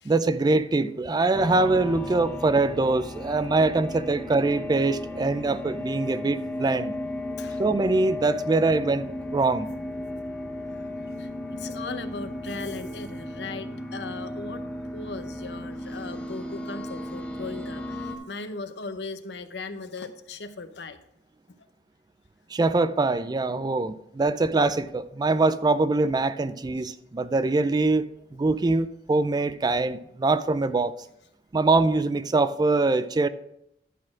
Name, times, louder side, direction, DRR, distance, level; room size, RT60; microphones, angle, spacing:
voice 1, 0.0-6.9 7.6-9.7 22.5-28.0 28.3-30.9 31.5-33.3, right 3 dB, 25° right, 0.3 m, -23 dB
sound 1, 1.3-18.2, left 1 dB, 5° left, 1.0 m, -35 dB
voice 2, 7.3-7.6 11.2-14.6 14.9-21.0, left 3 dB, 70° left, 0.8 m, -38 dB
11.0 x 4.2 x 6.2 m
head